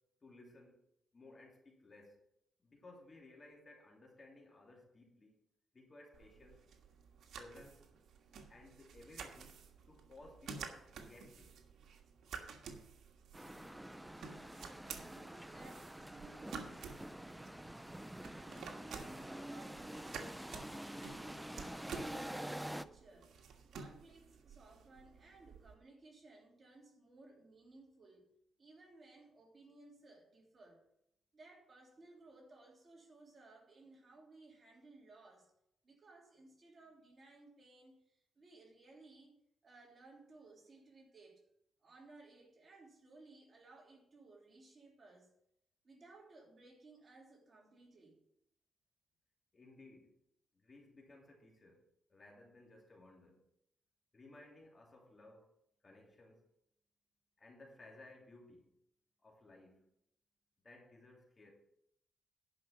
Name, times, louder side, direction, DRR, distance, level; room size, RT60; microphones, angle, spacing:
voice 1, 0.2-0.8 1.1-2.2 2.6-5.4 5.7-6.6 7.3-7.9 8.5-9.6 9.9-11.6 23.6-23.7 49.5-50.2 50.5-51.8 52.1-53.4 54.1-56.5 57.4-58.7 59.2-59.9 60.6-61.5, left 2 dB, 30° left, 0 dB, 3.0 m, -59 dB
sound 1, 6.1-25.7, right 5 dB, 80° right, 1.5 m, -52 dB
sound 2, 13.3-22.8, right 1 dB, 5° right, 0.4 m, -47 dB
voice 2, 14.9-16.9 18.3-20.2 20.7-23.3 23.7-28.3 28.6-30.8 31.3-35.5 35.8-39.3 39.6-41.4 41.8-45.3 45.8-48.2, right 2 dB, 35° right, -1 dB, 3.2 m, -60 dB
10.5 x 5.9 x 7.4 m, 0.75 s
cardioid pair, 105°, 0 cm